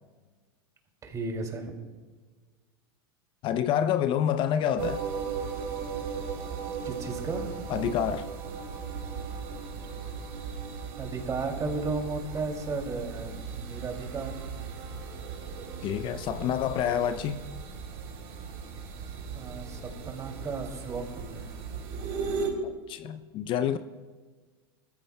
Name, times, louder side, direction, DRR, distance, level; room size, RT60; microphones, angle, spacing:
voice 1, 1.0-1.7 6.8-7.5 11.0-14.4 19.3-21.5, right 3 dB, 25° right, 2.5 m, -34 dB
voice 2, 3.4-5.0 7.7-8.3 15.8-17.4 22.9-23.8, left 9 dB, 40° left, 0.5 m, -27 dB
sound 1, 4.8-22.5, right 5 dB, 55° right, 3.1 m, -37 dB
21.0 x 14.0 x 2.2 m
hypercardioid pair, 95°, 13 cm